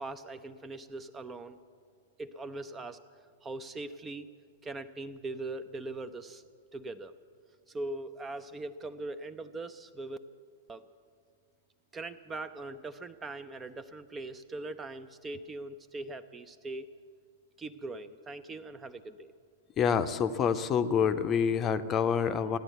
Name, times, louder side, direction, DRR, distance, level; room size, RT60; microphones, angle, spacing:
voice 1, 0.0-1.6 2.2-3.0 3.4-4.3 4.6-6.4 6.7-7.1 7.7-10.2 10.7-10.8 11.9-16.9 17.6-19.3, right 2 dB, 15° right, 11 dB, 0.5 m, -41 dB
voice 2, 19.8-22.6, left 7 dB, 25° left, 11 dB, 0.7 m, -27 dB
15.5 x 10.5 x 8.0 m, 2.1 s
figure-of-eight pair, 100°, 0 cm